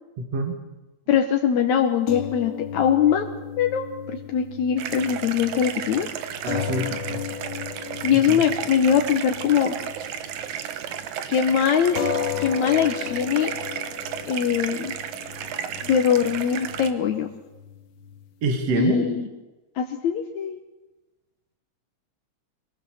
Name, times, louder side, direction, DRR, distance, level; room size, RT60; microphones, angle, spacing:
voice 1, 0.2-0.6 6.4-7.2 8.1-8.4 18.4-19.0, right 3 dB, 60° right, 4 dB, 3.0 m, -26 dB
voice 2, 1.1-3.3 3.6-6.1 8.0-9.8 11.3-12.0 12.4-13.5 14.3-14.9 15.8-17.3 18.7-19.3 19.8-20.6, left 8 dB, 75° left, 4 dB, 2.4 m, -22 dB
sound 1, 2.1-10.6 10.9-11.1 12.0-18.5, left 8 dB, 55° left, 1.7 m, -35 dB
sound 2, 4.8-16.9, right 9 dB, 80° right, 2.6 m, -33 dB
23.5 x 17.5 x 7.2 m, 1.1 s
omnidirectional pair, 3.4 m